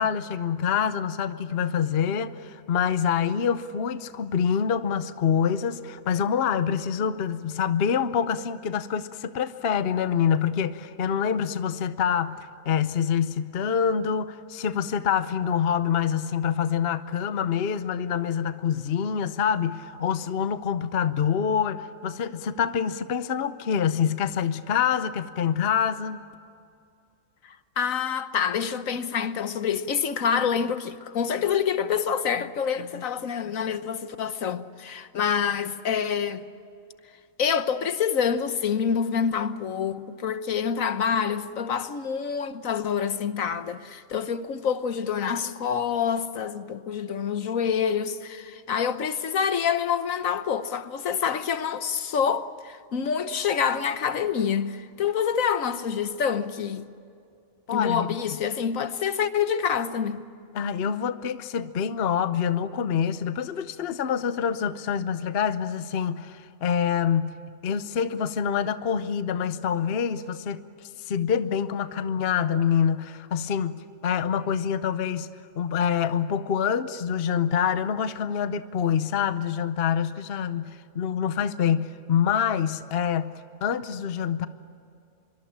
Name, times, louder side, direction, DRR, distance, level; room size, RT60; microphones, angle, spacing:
voice 1, 0.0-26.2 57.7-58.4 60.5-67.4 67.6-84.5, left 8 dB, 50° left, 1.0 m, -26 dB
voice 2, 27.4-36.4 37.4-56.9 57.7-60.2, left 7 dB, 75° left, 1.4 m, -27 dB
25.0 x 24.0 x 8.8 m
omnidirectional pair, 1.4 m